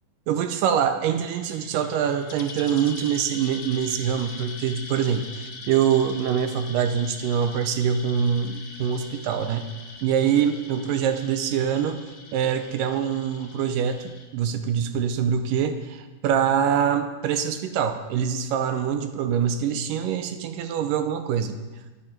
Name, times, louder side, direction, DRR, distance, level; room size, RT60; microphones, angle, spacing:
voice 1, 0.3-9.7 10.0-12.0 12.3-21.6, right 8 dB, 75° right, 8 dB, 2.1 m, -24 dB
sound 1, 1.0-14.3, left 3 dB, 55° left, 2.7 m, -42 dB
11.5 x 11.0 x 5.9 m, 1.2 s
omnidirectional pair, 4.4 m